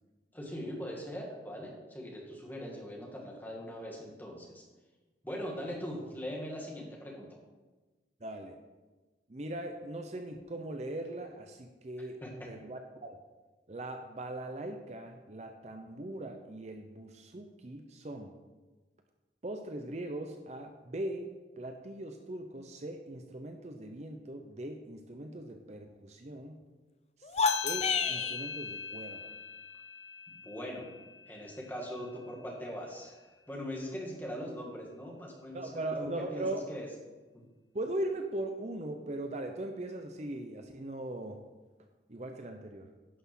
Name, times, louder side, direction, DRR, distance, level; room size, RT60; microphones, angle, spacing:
voice 1, 0.3-4.6 5.2-7.4 12.0-12.5 30.3-30.9 31.3-36.9 37.3-37.4, equal, 10° left, -2 dB, 2.0 m, -41 dB
voice 2, 8.2-8.6 9.3-12.2 12.5-13.2 13.7-18.3 19.4-26.6 27.2-27.3 27.6-29.3 35.5-36.6 37.7-41.4 42.1-42.9, right 1 dB, 40° right, 5 dB, 0.7 m, -40 dB
sound 1, 27.2-28.4, left 5 dB, 35° left, 0.5 m, -29 dB
sound 2, 27.4-32.3, left 8 dB, 80° left, 0.7 m, -40 dB
11.0 x 6.1 x 6.1 m, 1.2 s
head